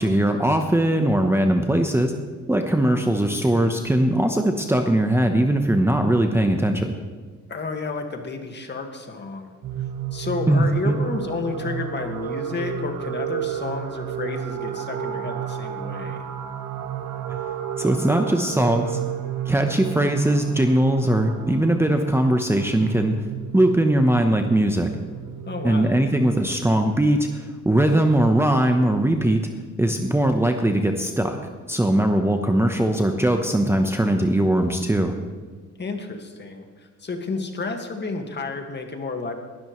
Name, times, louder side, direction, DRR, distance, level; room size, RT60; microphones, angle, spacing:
voice 1, 0.0-2.1 2.5-6.9 10.5-10.9 17.8-19.0 19.5-23.1 23.5-24.9 25.6-29.4 29.8-31.4 31.7-35.1, right 1 dB, 10° right, 4 dB, 1.0 m, -20 dB
voice 2, 7.5-9.5 10.1-16.3 25.5-25.9 35.8-39.3, left 3 dB, 35° left, 4 dB, 1.9 m, -31 dB
kaivo texabstrdrone, 9.6-26.0, right 9 dB, 80° right, 1.4 m, -32 dB
19.5 x 12.5 x 3.2 m, 1.4 s
cardioid pair, 90°, 30 cm